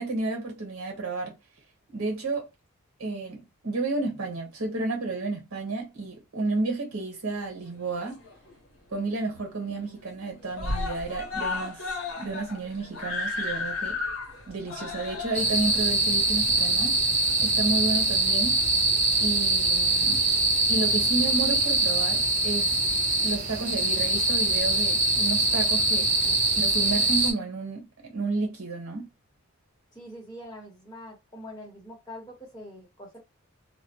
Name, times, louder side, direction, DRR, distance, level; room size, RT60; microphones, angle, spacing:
voice 1, 0.0-1.3 1.9-2.5 3.0-8.2 8.9-14.0 14.5-17.0 17.4-18.6 19.2-20.2 20.7-22.7 23.2-26.1 26.5-29.1, right 3 dB, 85° right, 1.0 m, -31 dB
Screaming, 7.7-8.6 8.9-9.0 9.3-9.4 9.7-10.2 10.5-17.4 18.2-18.3, left 3 dB, 60° left, 0.8 m, -34 dB
sound 1, 15.4-27.3, right 2 dB, 35° right, 0.8 m, -23 dB
voice 2, 29.9-33.2, left 1 dB, 20° left, 1.0 m, -44 dB
2.1 x 2.1 x 2.8 m
head